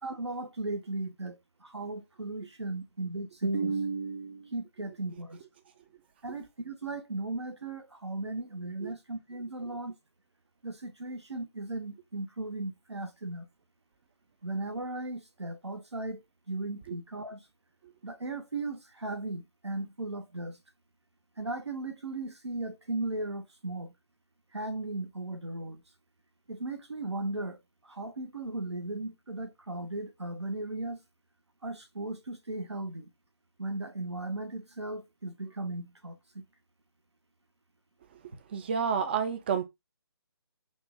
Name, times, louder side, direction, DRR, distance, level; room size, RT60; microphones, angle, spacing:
voice 1, 0.0-5.4 6.2-9.9 10.6-13.4 14.4-16.2 16.5-17.4 18.0-20.6 21.4-23.9 24.5-25.8 26.5-31.0 31.6-33.1 33.6-36.1, right 2 dB, 75° right, 1.2 m, -36 dB
voice 2, 38.5-39.6, right 7 dB, 25° right, 0.5 m, -29 dB
4.4 x 2.6 x 3.4 m
figure-of-eight pair, 145°, 14 cm